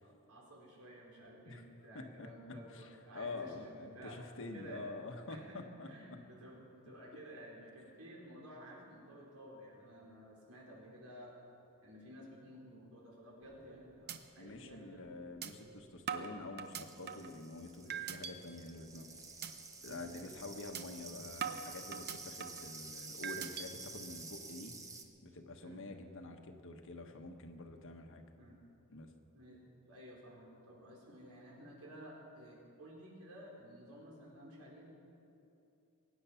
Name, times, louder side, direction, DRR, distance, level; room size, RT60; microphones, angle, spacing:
voice 1, 0.0-4.2 4.5-4.8 5.3-11.4 11.8-15.1 19.9-20.1 25.6-25.8 28.4-28.6 29.3-29.6 29.9-34.9, equal, 85° right, -3 dB, 4.4 m, -53 dB
voice 2, 1.9-6.2 14.4-19.1 19.8-24.8 25.2-28.2 28.9-29.1, left 2 dB, 60° left, 5 dB, 1.3 m, -47 dB
sound 1, 13.4-13.7 14.1-14.2 14.6-14.7 15.4-15.5 16.1-17.3 17.9-18.3 18.8-19.0 19.4-19.5 19.9-20.1 20.7-20.8 21.4-22.7 23.2-23.7, right 8 dB, 45° right, 0.8 m, -41 dB
sound 2, 16.7-25.0, right 3 dB, 15° right, 1.0 m, -51 dB
23.0 x 9.8 x 5.8 m, 2.8 s
head